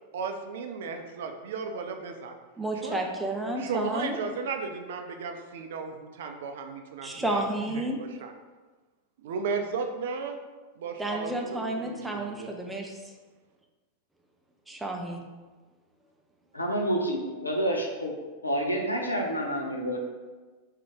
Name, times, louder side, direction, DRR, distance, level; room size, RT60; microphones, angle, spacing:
voice 1, 0.1-2.3 2.8-3.0 3.6-7.4 7.7-8.3 9.2-10.4 10.8-12.5, right 5 dB, 55° right, 5 dB, 0.4 m, -35 dB
voice 2, 2.6-4.2 7.0-8.0 11.0-12.9 14.7-15.2, right 1 dB, 5° right, 1 dB, 0.5 m, -31 dB
voice 3, 16.5-18.1 18.4-20.0, equal, 85° left, 0 dB, 0.6 m, -28 dB
3.7 x 2.7 x 3.6 m, 1.3 s
figure-of-eight pair, 90°, 0 cm